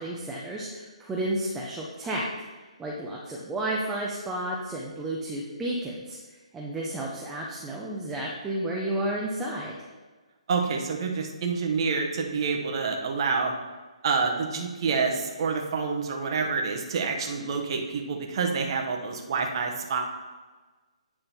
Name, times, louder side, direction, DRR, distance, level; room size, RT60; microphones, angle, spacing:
voice 1, 0.0-2.2 2.8-6.2 6.5-9.8, right 1 dB, 10° right, -3 dB, 0.8 m, -32 dB
voice 2, 10.5-13.5 14.0-20.0, right 5 dB, 45° right, 2 dB, 1.2 m, -27 dB
9.2 x 3.7 x 4.5 m, 1.3 s
figure-of-eight pair, 140°, 4 cm